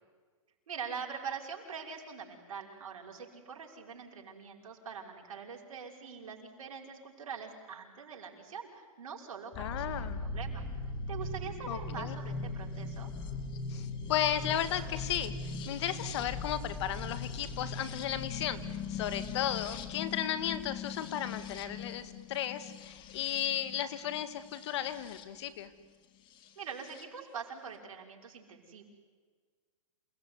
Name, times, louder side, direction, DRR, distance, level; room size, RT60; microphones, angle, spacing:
voice 1, 0.7-10.6 11.1-13.1 26.6-28.8, right 6 dB, 75° right, 0 dB, 5.9 m, -43 dB
sound 1, 9.5-25.3 26.4-27.0, left 3 dB, 25° left, 2.0 m, -40 dB
voice 2, 9.6-10.2 11.7-12.2 13.7-25.7, left 10 dB, 50° left, 12 dB, 1.9 m, -35 dB
28.5 x 18.5 x 9.8 m, 1.5 s
hypercardioid pair, 145°, 18 cm